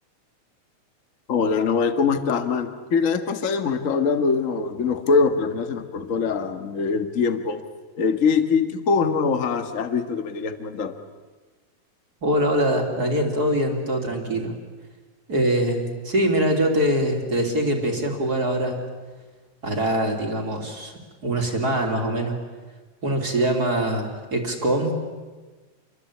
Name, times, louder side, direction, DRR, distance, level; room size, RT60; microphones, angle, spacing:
voice 1, 1.3-7.6 8.0-10.9, left 5 dB, 45° left, 9 dB, 1.0 m, -23 dB
voice 2, 12.2-14.5 15.3-18.8 19.6-20.9 21.2-22.4 23.0-24.9, right 1 dB, 30° right, 3 dB, 3.2 m, -23 dB
28.0 x 22.5 x 8.5 m, 1.3 s
omnidirectional pair, 3.9 m